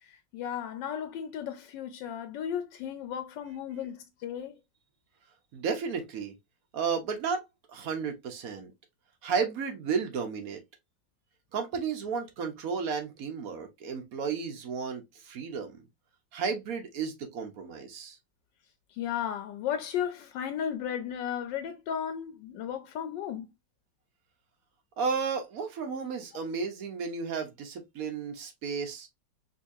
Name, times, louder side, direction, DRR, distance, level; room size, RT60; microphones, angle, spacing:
voice 1, 0.0-4.6 18.9-23.5, left 9 dB, 80° left, 1.2 m, -35 dB
voice 2, 5.5-6.3 6.7-7.4 7.7-8.7 9.2-10.6 11.5-15.8 16.3-18.2 25.0-29.1, right 5 dB, 55° right, 1.2 m, -33 dB
4.0 x 2.8 x 2.6 m
omnidirectional pair, 2.0 m